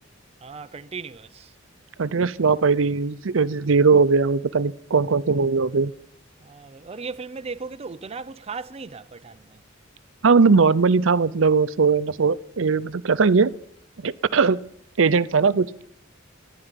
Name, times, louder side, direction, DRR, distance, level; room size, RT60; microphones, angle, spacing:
voice 1, 0.4-1.5 6.4-9.6, right 4 dB, 30° right, 0.5 m, -37 dB
voice 2, 2.0-5.9 10.2-13.5 14.0-14.6 15.0-15.7, right 4 dB, 80° right, 0.6 m, -19 dB
14.0 x 11.0 x 9.0 m
head